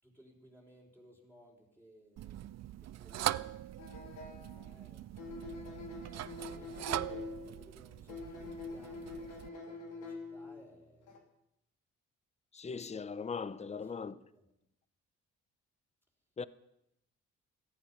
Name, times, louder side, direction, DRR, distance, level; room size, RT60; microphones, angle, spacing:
voice 1, 0.0-2.5 2.8-3.7 4.2-5.0 6.4-11.2 13.3-14.5, equal, 5° left, 5.2 m, -60 dB
sound 1, 2.2-9.5, right 13 dB, 60° right, 0.6 m, -41 dB
sound 2, 3.8-4.7 5.2-7.6 8.1-10.6 11.0-11.2, left 3 dB, 85° left, 3.2 m, -45 dB
voice 2, 12.5-14.1 16.4-16.5, left 5 dB, 20° left, 0.7 m, -39 dB
17.5 x 14.5 x 5.8 m
cardioid pair, 90°, 30 cm